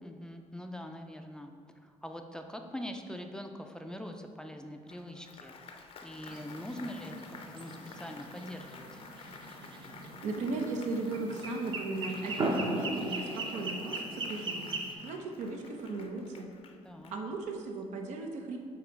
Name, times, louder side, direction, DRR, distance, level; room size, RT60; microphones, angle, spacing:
voice 1, 0.0-1.5 1.8-9.0 16.8-17.1, left 1 dB, 5° left, 4 dB, 0.4 m, -43 dB
Applause, 4.9-17.6, left 4 dB, 50° left, 0.6 m, -51 dB
sound 1, 6.3-14.9, right 2 dB, 40° right, 0.8 m, -38 dB
voice 2, 10.2-14.7 15.0-16.5 17.1-18.6, right 3 dB, 80° right, 3 dB, 0.8 m, -36 dB
7.8 x 2.9 x 5.2 m, 2.1 s
cardioid pair, 115°, 12 cm